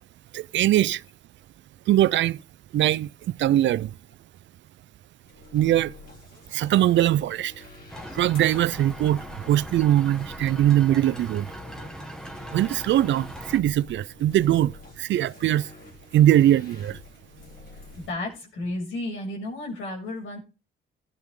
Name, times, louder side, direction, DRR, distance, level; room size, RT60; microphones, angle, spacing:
voice 1, 0.3-1.0 1.9-2.4 2.7-3.9 5.5-5.9 6.5-7.5 8.1-11.5 12.5-15.7 16.1-17.0, right 12 dB, 70° right, 0.6 m, -21 dB
sound 1, 5.2-18.1, left 3 dB, 50° left, 3.8 m, -48 dB
sound 2, 7.9-13.6, equal, 5° left, 1.6 m, -40 dB
voice 2, 18.0-20.4, left 2 dB, 80° left, 6.9 m, -32 dB
15.0 x 10.5 x 3.8 m
cardioid pair, 90°, 20 cm